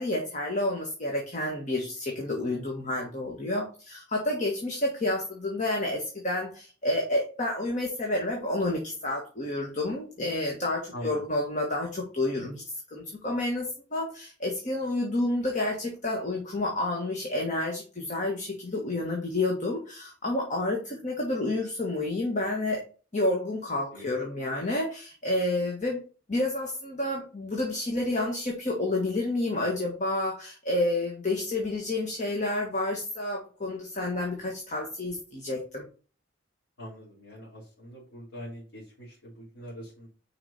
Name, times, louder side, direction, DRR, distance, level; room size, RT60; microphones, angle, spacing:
voice 1, 0.0-12.6 12.9-22.8 23.1-26.0 26.3-35.8, left 2 dB, 40° left, 0 dB, 1.5 m, -29 dB
voice 2, 10.9-11.3 23.9-24.1 36.8-40.1, equal, 85° left, -7 dB, 3.5 m, -43 dB
6.4 x 5.1 x 4.2 m, 0.37 s
head